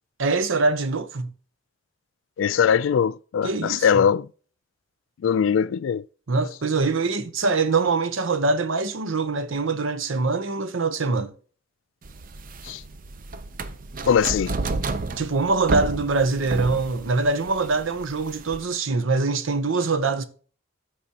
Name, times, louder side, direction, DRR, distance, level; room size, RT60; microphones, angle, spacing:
voice 1, 0.2-1.3 3.4-4.0 6.3-11.3 15.2-20.3, right 3 dB, 85° right, 0.8 m, -23 dB
voice 2, 2.4-4.3 5.2-6.0 12.6-12.8 14.1-14.6, left 7 dB, 70° left, 0.3 m, -21 dB
sound 1, 12.1-18.7, right 3 dB, 45° right, 0.6 m, -31 dB
13.5 x 5.0 x 2.8 m
head